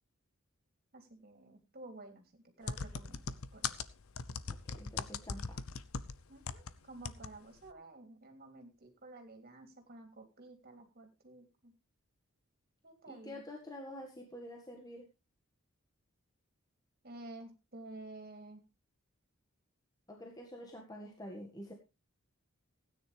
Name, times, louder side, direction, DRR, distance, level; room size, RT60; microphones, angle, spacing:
voice 1, 0.9-3.9 6.3-11.7 12.8-13.4 17.0-18.6, right 2 dB, 45° right, 4 dB, 3.2 m, -52 dB
sound 1, 2.7-6.7 7.0-7.3 7.6-7.7, left 5 dB, 80° left, 0.8 m, -39 dB
voice 2, 4.6-5.6 13.1-15.1 20.1-21.7, left 1 dB, 20° left, 1 dB, 1.9 m, -47 dB
16.0 x 9.8 x 3.4 m, 0.27 s
head